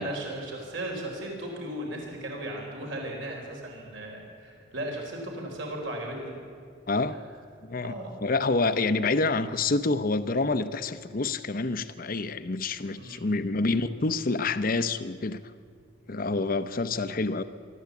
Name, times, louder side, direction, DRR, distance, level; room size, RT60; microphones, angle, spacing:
voice 1, 0.0-6.4 7.8-8.2 13.0-13.4, right 1 dB, 70° right, 0 dB, 4.4 m, -36 dB
voice 2, 6.9-7.2 7.6-7.9 8.2-15.4 16.1-17.4, left 3 dB, 45° left, 12 dB, 0.7 m, -27 dB
24.0 x 13.0 x 8.3 m, 2.2 s
head